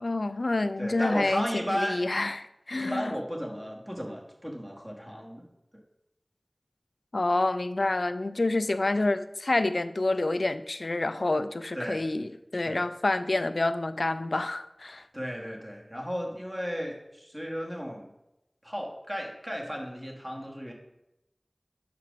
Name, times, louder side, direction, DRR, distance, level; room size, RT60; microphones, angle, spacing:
voice 1, 0.0-3.1 7.1-15.0, left 2 dB, 85° left, 0.3 m, -28 dB
voice 2, 0.8-2.0 2.7-5.5 5.7-5.8 11.7-12.0 12.6-12.8 15.1-18.1 18.6-20.7, equal, 20° right, 1.4 m, -34 dB
5.1 x 4.5 x 5.9 m
wide cardioid pair, 45°, 0 cm